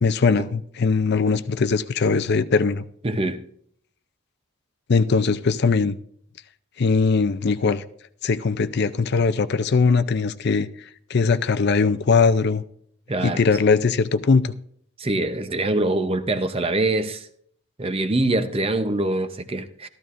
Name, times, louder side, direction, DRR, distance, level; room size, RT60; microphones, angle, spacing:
voice 1, 0.0-2.8 4.9-6.0 6.8-7.8 8.2-10.7 11.1-12.6 13.2-14.5, left 4 dB, 45° left, 0.5 m, -20 dB
voice 2, 3.0-3.4 13.1-13.4 15.0-17.3 17.8-19.9, right 2 dB, 25° right, 0.6 m, -24 dB
14.0 x 13.5 x 2.5 m
head